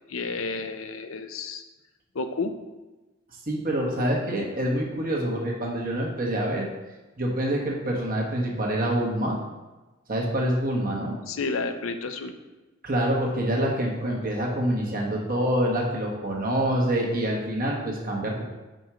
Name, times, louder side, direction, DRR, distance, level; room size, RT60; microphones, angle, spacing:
voice 1, 0.1-1.6 2.1-2.5 11.3-12.3, left 4 dB, 90° left, 8 dB, 0.6 m, -31 dB
voice 2, 3.5-6.6 7.2-9.4 10.1-11.1 12.8-18.4, right 1 dB, 45° right, -1 dB, 1.3 m, -26 dB
5.3 x 4.4 x 6.1 m, 1.1 s
head